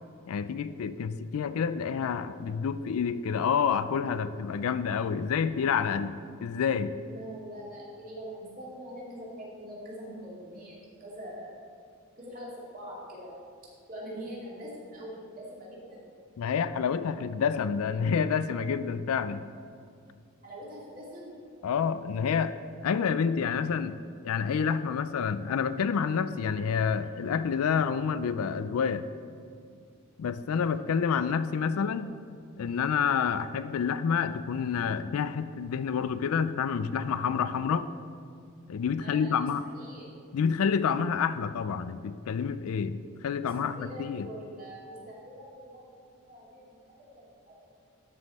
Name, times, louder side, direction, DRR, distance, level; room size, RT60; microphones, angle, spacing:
voice 1, 0.3-7.0 16.4-19.4 21.6-22.5 22.8-24.0 24.2-29.1 30.2-32.1 32.6-37.9 38.7-39.6 40.3-44.3, left 6 dB, 75° left, 13 dB, 0.4 m, -28 dB
voice 2, 7.1-11.6 12.2-13.4 13.9-16.0 20.4-21.3 39.0-39.3 39.7-40.1 43.4-47.3 47.6-47.7, equal, 40° right, -6 dB, 2.4 m, -43 dB
12.5 x 5.3 x 4.2 m, 2.4 s
head